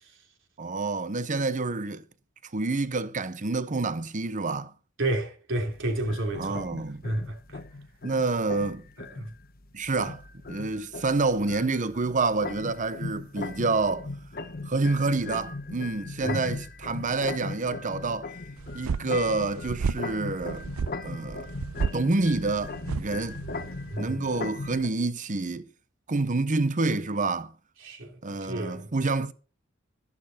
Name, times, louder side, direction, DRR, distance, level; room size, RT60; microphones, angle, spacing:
voice 1, 0.6-2.0 2.5-4.7 6.4-7.0 8.0-8.8 9.7-10.2 10.5-14.1 14.6-18.3 18.7-20.6 21.0-21.5 21.9-23.4 24.0-25.7 26.1-27.5 28.2-29.3, right 3 dB, 40° right, 0.8 m, -28 dB
voice 2, 5.0-6.6 7.0-7.6 9.0-9.3 16.3-16.4 23.9-24.2 27.8-28.9, right 1 dB, 65° right, 3.0 m, -31 dB
sound 1, 5.7-24.9, left 3 dB, 45° left, 1.0 m, -38 dB
sound 2, 18.6-24.0, right 5 dB, 85° right, 0.5 m, -33 dB
12.5 x 11.0 x 4.4 m
head